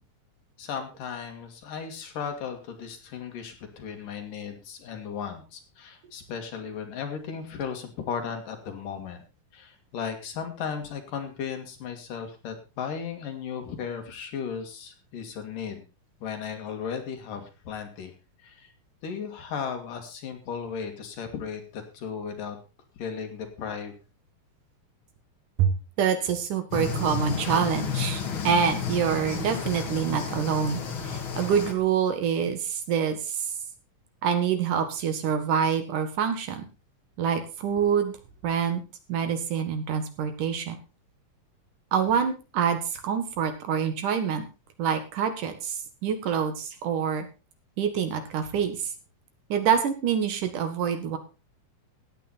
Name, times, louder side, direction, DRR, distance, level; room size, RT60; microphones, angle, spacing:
voice 1, 0.6-9.2 9.5-15.9 16.2-18.1 18.4-18.7 19.0-22.6 23.0-23.9, left 7 dB, 70° left, 5 dB, 3.7 m, -36 dB
voice 2, 26.0-33.5 34.2-36.6 37.2-38.1 38.4-38.8 39.1-40.8 41.9-44.5 44.8-47.3 47.8-48.9 49.5-51.2, right 7 dB, 70° right, 8 dB, 3.1 m, -26 dB
sound 1, 26.7-31.7, left 6 dB, 45° left, 2.2 m, -31 dB
15.5 x 9.3 x 4.2 m, 0.30 s
omnidirectional pair, 4.0 m